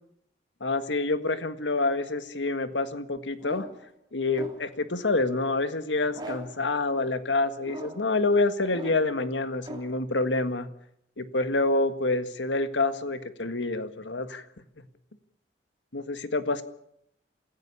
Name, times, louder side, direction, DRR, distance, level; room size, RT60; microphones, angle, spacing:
voice 1, 0.6-3.7 4.1-10.7 11.2-14.4 15.9-16.6, left 2 dB, 85° left, 10 dB, 1.7 m, -27 dB
sound 1, 3.4-3.9 4.3-4.8 6.1-6.7 7.6-8.2 8.7-9.2 9.6-10.0, right 1 dB, 25° right, 2.8 m, -41 dB
27.5 x 16.0 x 7.1 m, 0.74 s
head